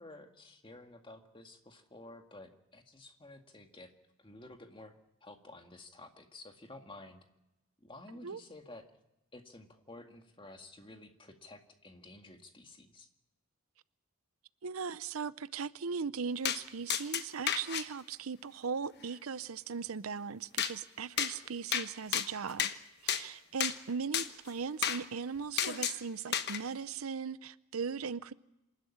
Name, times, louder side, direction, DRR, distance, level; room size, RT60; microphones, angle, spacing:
voice 1, 0.0-3.9 4.2-4.9 5.2-7.2 7.8-8.8 9.3-13.1, left 2 dB, 25° left, 2.0 m, -52 dB
voice 2, 14.6-22.7 23.0-28.3, right 5 dB, 80° right, 0.7 m, -38 dB
sound 1, 16.4-16.6 16.9-17.8 20.6-20.7 21.2-21.3 21.7-21.9 22.1-22.7 23.1-23.2 23.6-23.8 24.1-24.3 24.8-25.0 25.6-26.0 26.3-26.6, left 9 dB, 50° left, 1.2 m, -31 dB
27.0 x 12.0 x 9.9 m
head